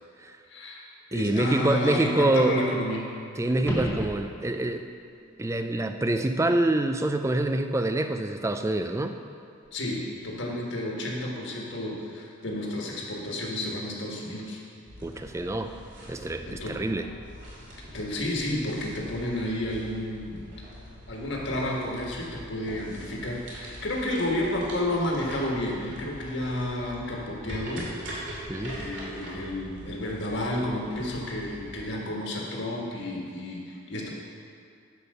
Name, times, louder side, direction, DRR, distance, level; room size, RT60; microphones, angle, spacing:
voice 1, 0.5-0.9 1.1-3.1 9.7-14.6 15.4-15.6 16.4-16.8 17.9-20.4 21.1-34.1, left 1 dB, 55° left, -2 dB, 1.6 m, -31 dB
voice 2, 1.1-2.6 3.4-4.9 5.4-9.1 15.0-15.7 16.1-17.1 28.5-28.8, right 1 dB, 15° right, 7 dB, 0.3 m, -26 dB
sound 1, 3.5-4.8 9.7-9.8, equal, 10° left, 1.0 m, -32 dB
sound 2, 14.9-31.9, equal, 55° right, 2.5 m, -43 dB
10.5 x 5.2 x 6.7 m, 2.5 s
head